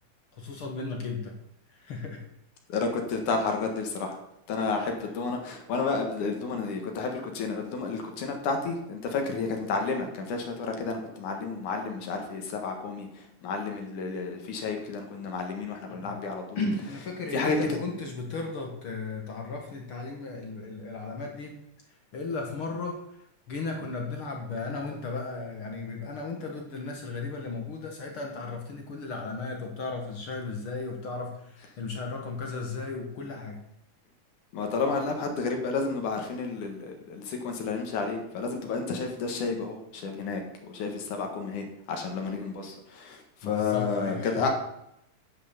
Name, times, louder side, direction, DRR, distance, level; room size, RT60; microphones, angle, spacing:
voice 1, 0.4-1.3 1.7-2.2 15.9-16.1 16.6-21.5 22.1-23.0 23.5-33.6 43.4-44.5, left 3 dB, 50° left, 1 dB, 2.0 m, -35 dB
voice 2, 2.7-4.2 4.5-16.6 17.3-17.6 34.5-40.4 40.7-44.5, left 4 dB, 70° left, 3 dB, 3.0 m, -31 dB
10.0 x 6.1 x 7.3 m, 0.80 s
omnidirectional pair, 3.8 m